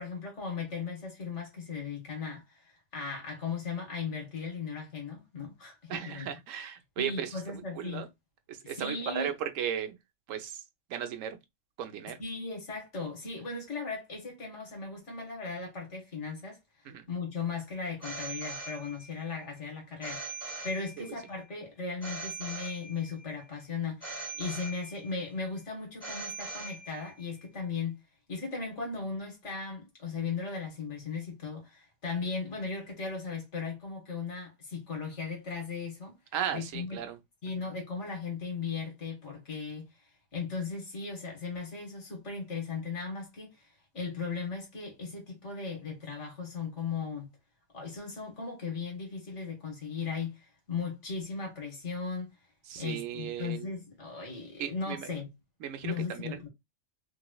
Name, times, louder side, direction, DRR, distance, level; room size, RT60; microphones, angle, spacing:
voice 1, 0.0-6.3 7.0-8.1 8.8-9.3 12.2-16.6 17.1-28.0 28.3-36.2 36.5-37.0 37.4-39.9 40.3-43.7 43.9-47.3 47.7-52.3 52.8-55.3 55.8-56.5, left 5 dB, 65° left, 1.7 m, -37 dB
voice 2, 5.9-8.1 8.5-10.0 10.3-10.6 10.9-11.4 11.8-12.2 16.8-17.0 21.0-21.1 36.3-37.2 37.6-37.7 52.7-53.7 54.6-55.1 55.6-56.4, right 9 dB, 90° right, 1.0 m, -36 dB
Telephone, 18.0-19.3 20.0-21.3 22.0-23.3 24.0-25.3 26.0-27.3, right 3 dB, 30° right, 1.9 m, -41 dB
3.2 x 3.0 x 2.2 m
omnidirectional pair, 1.3 m